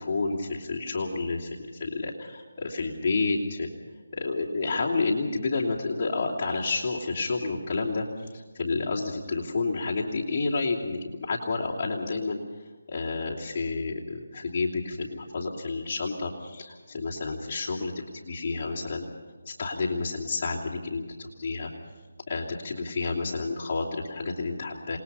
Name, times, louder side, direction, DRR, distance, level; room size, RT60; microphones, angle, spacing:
voice 1, 0.0-1.5 1.8-3.7 4.1-8.1 8.3-12.4 12.9-19.0 19.4-21.7 22.3-25.0, left 3 dB, 30° left, -4 dB, 2.9 m, -30 dB
28.0 x 20.5 x 5.6 m, 1.3 s
figure-of-eight pair, 165°, 0 cm